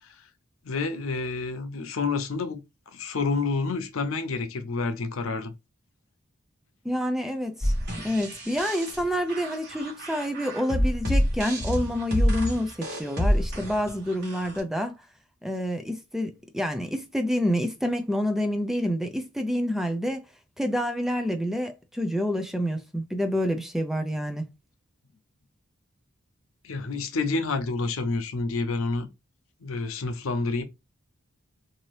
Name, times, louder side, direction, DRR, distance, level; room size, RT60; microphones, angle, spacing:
voice 1, 0.6-2.6 2.9-5.5 26.6-29.1 29.6-30.7, left 3 dB, 85° left, 0.6 m, -28 dB
voice 2, 6.8-15.0 15.4-20.2 20.6-24.5, equal, ahead, 0.4 m, -28 dB
sound 1, 7.6-14.6, equal, 55° right, 1.3 m, -28 dB
2.8 x 2.6 x 3.1 m
head